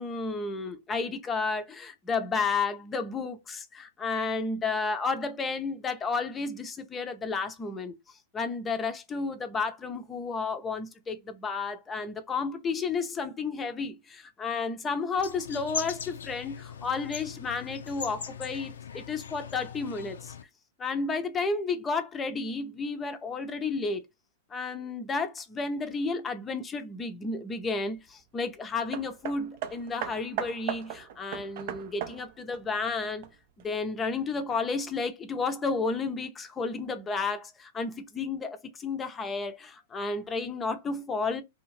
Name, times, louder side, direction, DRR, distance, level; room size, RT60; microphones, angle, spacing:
voice 1, 0.0-7.9 8.3-20.3 20.8-24.0 24.5-33.3 33.6-41.4, left 4 dB, 20° left, 0.5 m, -32 dB
sound 1, 15.2-20.4, left 8 dB, 75° left, 0.4 m, -40 dB
Hammer, 28.9-33.7 34.5-34.6, right 9 dB, 55° right, 0.5 m, -38 dB
2.6 x 2.4 x 3.0 m
hypercardioid pair, 110°, 0 cm